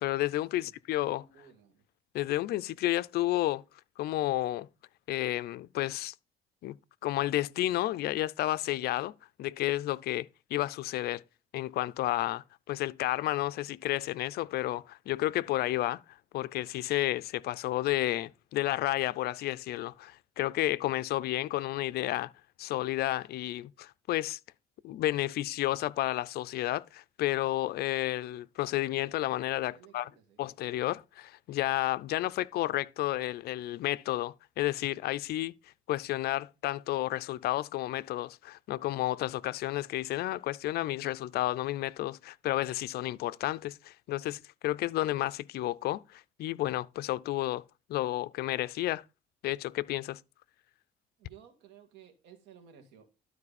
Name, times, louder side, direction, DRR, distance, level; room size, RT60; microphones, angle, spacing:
voice 1, 0.0-1.2 2.1-3.6 4.0-4.7 5.1-6.1 6.6-6.8 7.0-9.1 9.4-11.2 11.5-16.0 16.3-22.3 22.6-24.4 24.8-30.1 30.4-35.5 35.9-47.6 47.9-49.0 49.4-50.2, left 15 dB, 70° left, 0.5 m, -31 dB
voice 2, 1.2-1.8 29.7-30.4 51.2-53.1, right 8 dB, 85° right, 2.4 m, -56 dB
12.5 x 4.7 x 4.2 m
cardioid pair, 110°, 17 cm